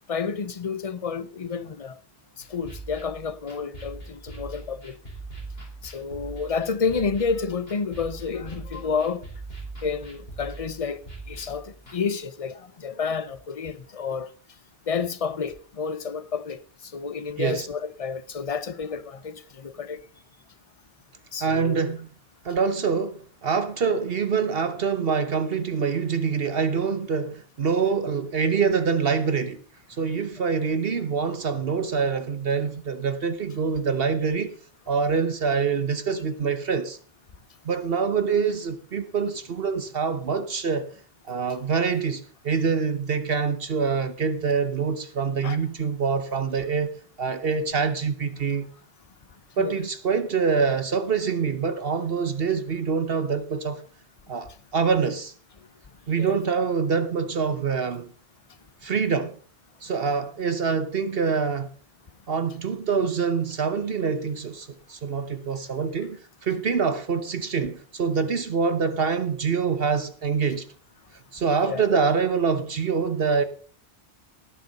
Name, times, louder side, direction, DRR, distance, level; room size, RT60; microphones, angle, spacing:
voice 1, 0.1-2.0 2.4-5.0 5.8-9.2 9.8-14.3 14.9-20.0 21.3-21.8 45.4-45.6 49.6-49.7 56.2-56.3 71.6-71.8, left 5 dB, 35° left, 0.9 m, -30 dB
sound 1, 2.4-12.0, right 3 dB, 60° left, 4.6 m, -41 dB
voice 2, 21.4-22.1 22.4-29.6 29.9-34.6 34.9-37.0 37.6-40.9 41.3-46.9 47.2-48.7 49.6-53.8 54.3-55.3 56.1-58.1 58.8-59.3 59.8-61.7 62.3-70.7 71.3-73.4, right 5 dB, 60° right, 1.1 m, -25 dB
18.5 x 6.7 x 5.5 m
omnidirectional pair, 1.1 m